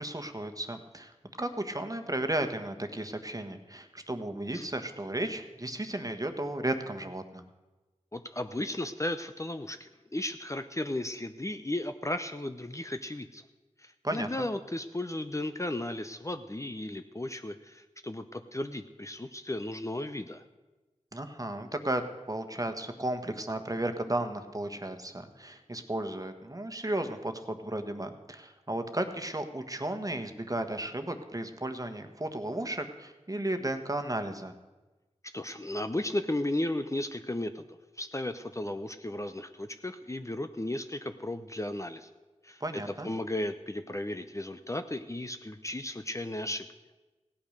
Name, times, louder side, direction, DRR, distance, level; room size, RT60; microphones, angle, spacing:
voice 1, 0.0-7.4 14.0-14.5 21.1-22.0 22.3-34.6 42.6-43.1, right 1 dB, 30° right, 7 dB, 1.4 m, -34 dB
voice 2, 8.1-13.4 13.8-20.4 35.3-37.7 38.0-42.1 42.4-42.6 43.0-46.7, left 1 dB, 25° left, 9 dB, 0.7 m, -35 dB
16.0 x 8.7 x 6.6 m, 1.2 s
cardioid pair, 45°, 12 cm